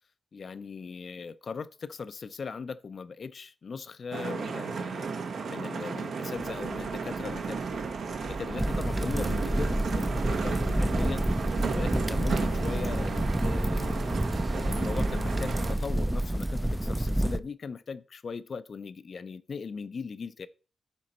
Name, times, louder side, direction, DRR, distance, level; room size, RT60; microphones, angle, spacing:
voice 1, 0.3-7.6 8.3-11.2 11.7-14.1 14.5-20.5, left 5 dB, 60° left, 0.5 m, -39 dB
sound 1, 4.1-15.7, right 5 dB, 85° right, 1.2 m, -34 dB
sound 2, 6.3-16.4, right 2 dB, 35° right, 1.0 m, -44 dB
sound 3, 8.6-17.4, right 1 dB, 10° right, 0.4 m, -29 dB
11.0 x 4.0 x 4.3 m
cardioid pair, 70°, 0 cm